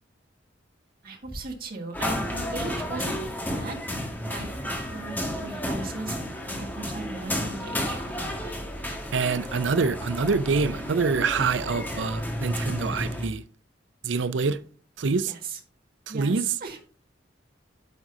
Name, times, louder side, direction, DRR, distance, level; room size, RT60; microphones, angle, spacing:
voice 1, 1.0-3.2 3.4-3.8 4.2-8.0 15.3-15.6 16.1-16.8, right 3 dB, 55° right, 1.7 m, -37 dB
sound 1, 1.9-13.3, equal, 10° left, 1.6 m, -32 dB
voice 2, 9.1-13.4 14.0-14.6 15.0-15.3 16.1-16.4, right 4 dB, 70° right, 0.5 m, -25 dB
11.0 x 7.4 x 2.7 m
head